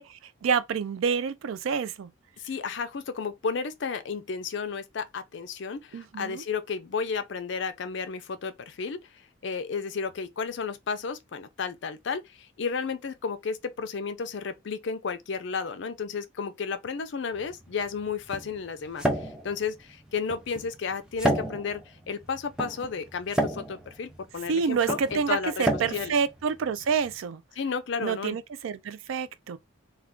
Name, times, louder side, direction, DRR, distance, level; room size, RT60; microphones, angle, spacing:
voice 1, 0.0-2.1 5.9-6.4 24.5-27.4 28.0-29.6, right 6 dB, 75° right, 0.3 m, -28 dB
voice 2, 2.4-26.1 27.6-28.4, left 5 dB, 60° left, 0.4 m, -33 dB
sound 1, 17.3-27.2, right 1 dB, 5° right, 0.4 m, -32 dB
2.4 x 2.3 x 3.5 m
head